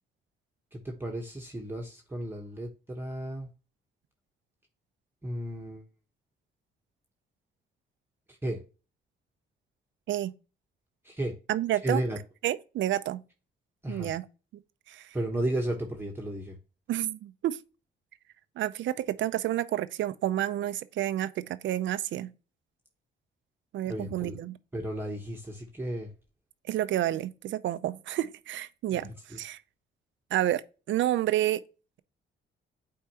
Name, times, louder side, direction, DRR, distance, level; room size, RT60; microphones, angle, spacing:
voice 1, 0.7-3.5 5.2-5.8 8.3-8.6 11.0-11.4 11.8-12.2 13.8-14.1 15.1-16.6 23.9-24.4 24.7-26.1 28.9-29.4, right 1 dB, 10° right, 1.2 m, -34 dB
voice 2, 11.5-12.0 12.4-13.2 13.9-14.3 14.9-15.1 16.9-17.6 18.6-22.3 23.7-24.5 26.7-29.6 30.3-31.6, right 13 dB, 75° right, 0.6 m, -30 dB
8.3 x 4.4 x 2.9 m
cardioid pair, 90°, 20 cm